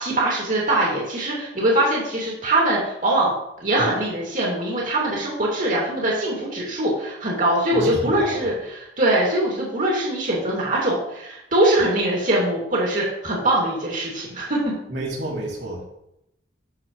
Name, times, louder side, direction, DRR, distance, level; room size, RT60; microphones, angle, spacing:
voice 1, 0.0-3.3 3.6-14.8, right 1 dB, 50° right, -4 dB, 2.4 m, -22 dB
voice 2, 7.7-8.5 14.9-15.9, right 1 dB, 75° right, -3 dB, 2.8 m, -30 dB
13.0 x 6.6 x 3.1 m, 0.81 s
head